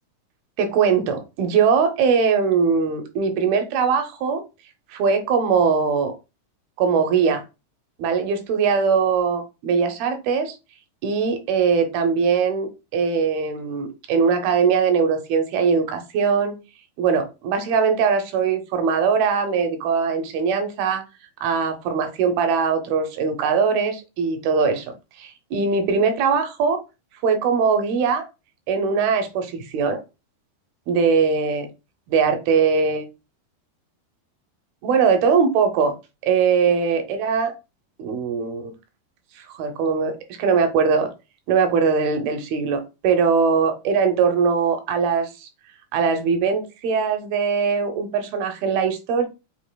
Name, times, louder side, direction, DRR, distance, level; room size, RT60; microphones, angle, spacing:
voice 1, 0.6-4.4 4.9-6.1 6.8-7.4 8.0-10.6 11.0-16.6 17.0-21.0 21.4-24.9 25.2-26.8 27.2-28.2 28.7-30.0 30.9-31.7 32.1-33.0 34.8-35.9 36.2-37.5 38.0-38.7 39.4-40.1 40.4-41.1 41.5-45.5 45.9-49.3, right 5 dB, 80° right, 6 dB, 2.5 m, -21 dB
7.4 x 2.8 x 2.2 m, 0.28 s
omnidirectional pair, 4.4 m